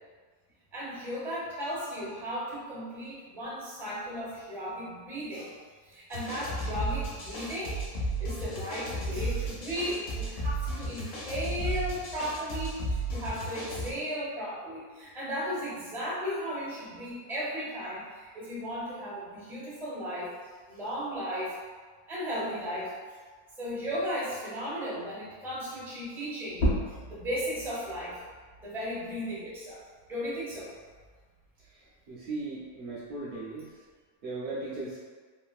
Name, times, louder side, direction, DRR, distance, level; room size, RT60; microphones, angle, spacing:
voice 1, 0.7-5.6 5.8-7.8 8.2-20.3 20.7-21.6 22.1-23.2 23.6-28.2 28.6-29.8 30.1-30.7 33.3-33.4, equal, 5° right, -8 dB, 0.4 m, -35 dB
sound 1, 6.1-13.9, right 1 dB, 60° left, 0.7 m, -34 dB
sound 2, 26.5-31.7 32.1-33.9, equal, 75° left, 1.2 m, -36 dB
voice 2, 32.1-33.7 34.2-35.0, right 3 dB, 65° right, -8 dB, 0.6 m, -37 dB
3.1 x 2.5 x 2.3 m, 1.5 s
omnidirectional pair, 1.6 m